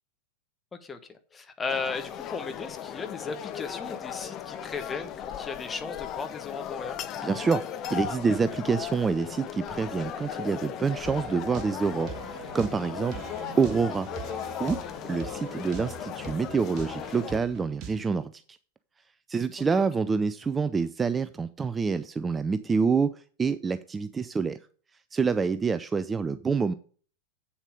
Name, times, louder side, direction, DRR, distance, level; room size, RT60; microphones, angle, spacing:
voice 1, 0.8-7.0 15.3-15.4, left 4 dB, 15° left, 7 dB, 1.3 m, -36 dB
sound 1, 1.7-17.4, left 9 dB, 35° left, 0.8 m, -37 dB
voice 2, 7.2-7.6 7.9-13.2 13.6-14.1 14.6-14.8 15.0-18.4 19.3-24.6 25.1-26.7, right 5 dB, 15° right, 13 dB, 0.4 m, -27 dB
sound 2, 11.0-18.0, right 7 dB, 35° right, 1.5 m, -42 dB
8.2 x 7.2 x 5.2 m, 0.44 s
figure-of-eight pair, 90°, 0 cm